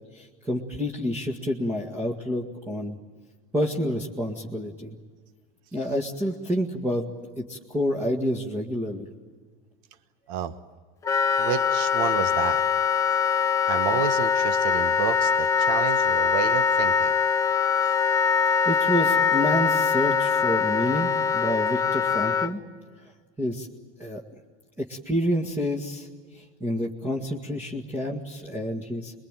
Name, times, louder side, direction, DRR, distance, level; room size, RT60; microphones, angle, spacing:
voice 1, 0.1-3.0 3.5-4.9 5.7-9.1 18.7-22.6 23.4-23.7 24.0-24.2 24.8-26.1 26.6-29.1, equal, 10° right, -2 dB, 1.9 m, -28 dB
Wind instrument woodwind instrument, 11.0-22.5, left 6 dB, 15° left, 0.8 m, -23 dB
voice 2, 11.4-12.6 13.7-17.1, right 9 dB, 65° right, 11 dB, 1.3 m, -30 dB
28.0 x 22.0 x 9.1 m, 1.5 s
supercardioid pair, 155°, 19 cm